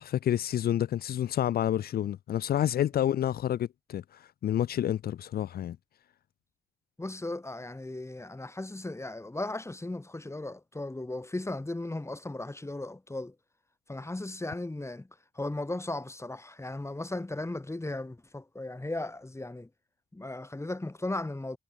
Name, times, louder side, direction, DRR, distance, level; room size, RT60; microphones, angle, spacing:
voice 1, 0.0-5.8, left 11 dB, 65° left, 1.0 m, -29 dB
voice 2, 7.0-13.3 13.9-15.1 15.3-19.7 20.1-21.6, left 2 dB, 15° left, 5.0 m, -36 dB
supercardioid pair, 55°, 17 cm